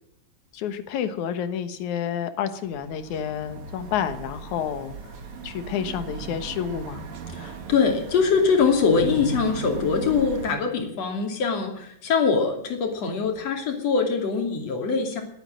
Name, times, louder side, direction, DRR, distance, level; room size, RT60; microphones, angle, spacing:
voice 1, 0.5-5.1 5.4-7.0, left 8 dB, 75° left, 10 dB, 2.7 m, -29 dB
sound 1, 2.6-10.6, right 5 dB, 65° right, 3.3 m, -37 dB
voice 2, 7.3-15.2, left 5 dB, 55° left, 3 dB, 3.9 m, -23 dB
21.5 x 8.9 x 6.4 m, 0.74 s
omnidirectional pair, 3.5 m